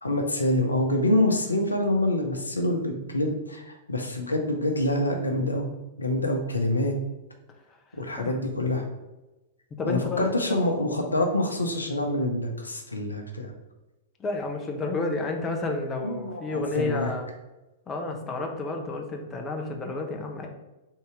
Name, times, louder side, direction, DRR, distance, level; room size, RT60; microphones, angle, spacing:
voice 1, 0.0-5.7 6.0-6.9 7.9-8.9 9.8-13.5 16.0-17.1, left 1 dB, 85° left, 3 dB, 0.6 m, -26 dB
voice 2, 9.8-10.3 14.2-17.3 17.9-20.5, left 3 dB, 20° left, 2 dB, 0.7 m, -30 dB
3.7 x 2.8 x 4.6 m, 1.0 s
figure-of-eight pair, 100°, 0 cm